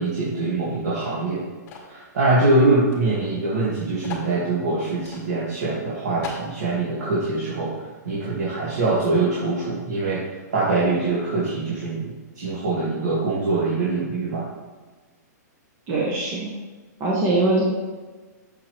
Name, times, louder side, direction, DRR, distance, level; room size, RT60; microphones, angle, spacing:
voice 1, 0.0-1.4 1.9-14.4, right 2 dB, 70° right, -7 dB, 2.3 m, -23 dB
sound 1, 1.7-2.0 2.9-3.0 3.3-3.4 4.0-4.3 5.0-5.2 5.7-5.8 6.2-6.5, left 6 dB, 30° left, 2.2 m, -36 dB
voice 2, 15.9-16.5 17.0-17.6, right 2 dB, 30° right, -4 dB, 1.3 m, -22 dB
8.0 x 6.8 x 3.4 m, 1.3 s
hypercardioid pair, 155°, 10 cm